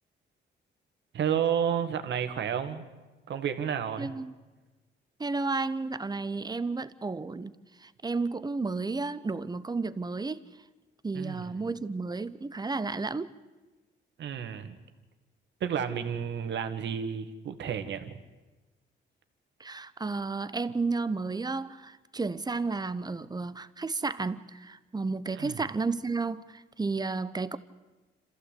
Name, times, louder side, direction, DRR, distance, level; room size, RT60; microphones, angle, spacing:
voice 1, 1.1-2.9 3.3-4.1 11.1-11.4 14.2-14.8 15.6-18.2 25.4-25.6, right 8 dB, 65° right, 1.9 m, -31 dB
voice 2, 4.0-4.3 5.2-10.4 11.0-13.3 19.6-27.6, right 3 dB, 20° right, 0.9 m, -32 dB
27.0 x 15.0 x 8.4 m
cardioid pair, 90°, 20 cm